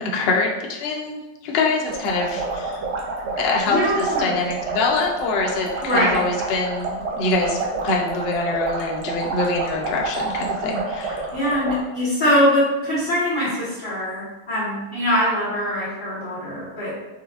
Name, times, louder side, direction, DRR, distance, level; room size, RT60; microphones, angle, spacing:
voice 1, 0.0-2.9 3.4-11.3, left 3 dB, 70° left, 0 dB, 0.5 m, -24 dB
sound 1, 1.8-11.8, right 3 dB, 85° right, 1.3 m, -29 dB
voice 2, 3.7-4.4 5.8-6.2 11.3-16.9, equal, 30° left, -13 dB, 1.5 m, -22 dB
4.7 x 2.2 x 2.4 m, 1.1 s
omnidirectional pair, 1.7 m